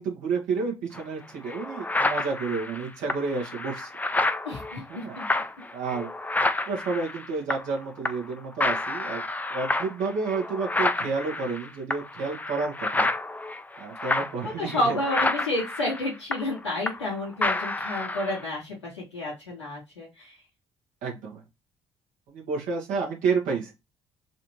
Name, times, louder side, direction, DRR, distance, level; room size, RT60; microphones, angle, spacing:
voice 1, 0.0-3.9 4.9-5.2 5.7-6.1 6.7-9.2 9.5-13.1 13.8-15.0 21.0-21.4 22.3-23.7, right 4 dB, 60° right, -1 dB, 1.6 m, -30 dB
sound 1, 0.9-1.0 1.5-7.8 8.0-8.3 8.6-17.1 17.4-18.4, left 2 dB, 10° left, 0.5 m, -29 dB
voice 2, 4.4-5.3 14.4-20.3, left 1 dB, 90° left, -4 dB, 1.2 m, -30 dB
4.1 x 2.8 x 3.1 m, 0.24 s
figure-of-eight pair, 50°, 14 cm